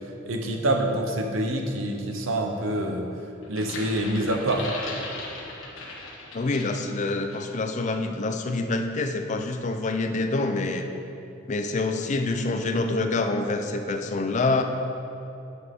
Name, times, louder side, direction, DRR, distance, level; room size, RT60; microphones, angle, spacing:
voice 1, 0.3-3.1 3.5-4.7, right 1 dB, 75° right, 3 dB, 0.8 m, -26 dB
sound 1, 3.4-6.9 7.3-7.5, left 2 dB, 80° left, 1.3 m, -38 dB
voice 2, 6.3-10.9 11.5-14.6, left 3 dB, 35° left, 6 dB, 0.4 m, -26 dB
9.3 x 6.1 x 3.6 m, 2.9 s
head